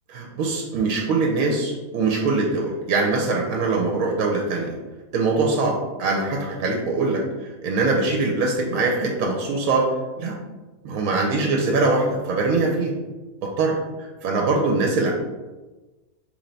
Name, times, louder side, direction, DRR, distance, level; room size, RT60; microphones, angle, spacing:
voice 1, 0.1-4.8 5.1-7.2 7.6-9.9 10.2-10.4 10.8-12.9 13.4-13.8 14.2-15.1, right 3 dB, 70° right, 0 dB, 1.0 m, -22 dB
3.3 x 3.2 x 3.9 m, 1.2 s
omnidirectional pair, 1.6 m